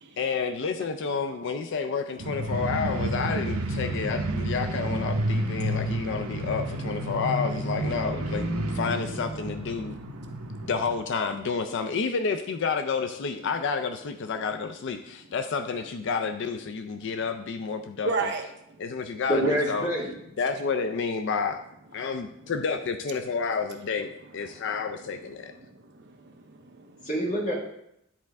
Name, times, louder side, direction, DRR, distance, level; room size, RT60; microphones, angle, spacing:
voice 1, 0.2-10.0 10.6-18.3 18.8-19.9 20.4-21.6 21.9-25.5, left 5 dB, 60° left, 8 dB, 0.4 m, -30 dB
sound 1, 2.2-10.9, right 1 dB, 90° right, 0.8 m, -30 dB
voice 2, 18.0-18.4 24.5-24.6 25.7-27.0, right 3 dB, 55° right, 4 dB, 0.8 m, -33 dB
voice 3, 19.3-20.1 27.0-27.5, equal, 35° left, -2 dB, 1.8 m, -26 dB
10.0 x 4.3 x 3.5 m, 0.78 s
head